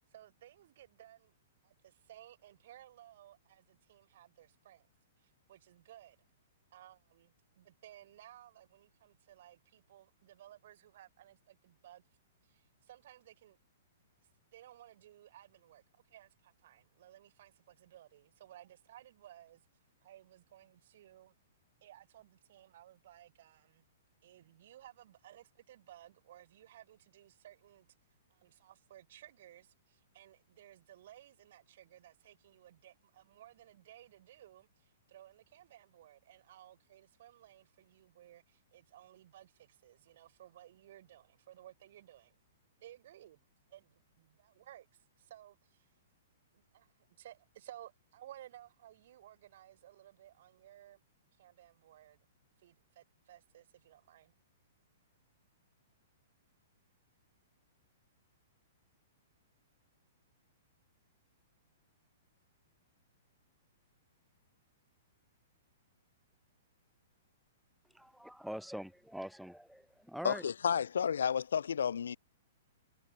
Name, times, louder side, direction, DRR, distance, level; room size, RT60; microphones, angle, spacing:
voice 1, 0.1-1.3 1.6-4.9 5.2-6.2 6.7-12.0 12.4-13.6 14.5-19.6 20.0-21.3 21.8-23.8 24.2-27.9 28.3-42.4 42.8-43.4 43.7-45.9 46.5-51.0 51.3-52.2 52.6-54.3, right 12 dB, 60° right, 3.1 m, -57 dB
voice 2, 67.9-70.5, equal, ahead, 0.8 m, -44 dB
voice 3, 70.2-72.2, left 7 dB, 80° left, 0.6 m, -31 dB
hypercardioid pair, 130°, 0 cm